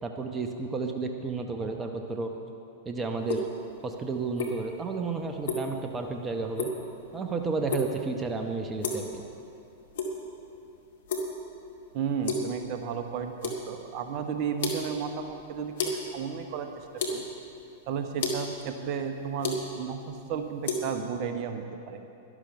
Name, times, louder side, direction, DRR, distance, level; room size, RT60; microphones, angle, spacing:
voice 1, 0.0-2.3 2.8-3.5 3.8-6.7 7.1-9.2, right 4 dB, 20° right, 4 dB, 0.9 m, -32 dB
sound 1, 3.2-20.8, left 2 dB, 60° left, 2.1 m, -35 dB
voice 2, 11.9-17.3 17.9-22.0, right 6 dB, 45° right, 6 dB, 1.0 m, -33 dB
12.0 x 12.0 x 5.7 m, 2.6 s
figure-of-eight pair, 100°, 0 cm